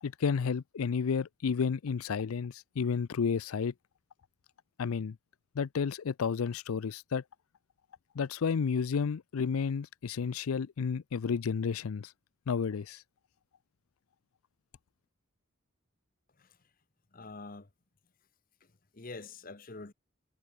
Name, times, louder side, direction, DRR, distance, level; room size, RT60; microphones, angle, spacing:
voice 1, 0.0-3.7 4.8-5.2 5.6-7.2 8.1-12.1 12.5-13.0, left 6 dB, 90° left, 0.5 m, -31 dB
voice 2, 17.1-17.7 18.6-19.9, left 3 dB, 40° left, 1.0 m, -46 dB
head